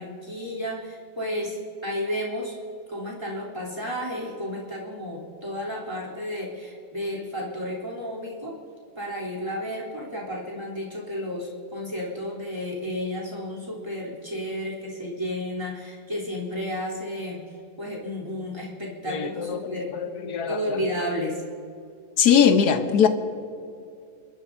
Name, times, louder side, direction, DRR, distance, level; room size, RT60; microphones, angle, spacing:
voice 1, 0.0-2.5 2.9-8.6 9.0-17.4 17.8-20.0 20.5-21.4, equal, 15° right, -4 dB, 3.3 m, -32 dB
voice 2, 19.1-19.6 20.0-20.6 22.2-23.1, left 7 dB, 70° left, 8 dB, 1.5 m, -20 dB
28.5 x 12.5 x 2.7 m, 2.5 s
omnidirectional pair, 1.7 m